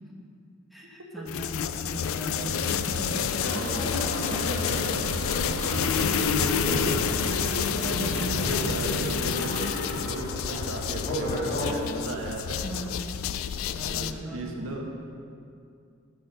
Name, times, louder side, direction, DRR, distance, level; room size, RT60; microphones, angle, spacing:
voice 1, 0.7-3.2 3.5-3.6 8.0-8.3 12.6-13.0 13.6-14.9, right 1 dB, ahead, -3 dB, 1.2 m, -38 dB
sound 1, 1.3-14.1, left 8 dB, 85° left, 0.4 m, -29 dB
sound 2, 2.4-9.7, right 5 dB, 70° right, 0.3 m, -37 dB
sound 3, 3.4-11.8, equal, 35° left, 2.4 m, -34 dB
voice 2, 4.1-5.0 5.8-7.0 7.7-8.0 8.3-12.6 13.7-14.9, right 1 dB, 90° right, 0 dB, 1.2 m, -36 dB
9.7 x 4.3 x 6.7 m, 2.4 s
head